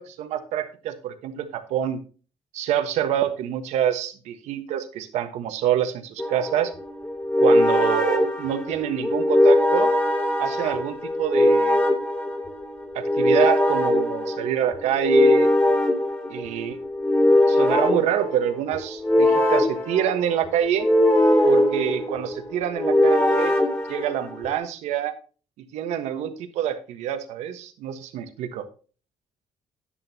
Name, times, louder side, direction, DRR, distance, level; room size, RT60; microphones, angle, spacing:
voice 1, 0.0-2.0 2.5-6.7 7.4-9.9 10.4-11.8 12.9-15.5 16.3-16.8 17.5-20.9 21.4-23.5 23.9-25.1 25.6-28.6, right 10 dB, 90° right, 8 dB, 1.4 m, -26 dB
sound 1, 6.2-24.6, left 1 dB, 20° left, 2.8 m, -21 dB
10.5 x 9.8 x 2.9 m, 0.37 s
cardioid pair, 95°, 11 cm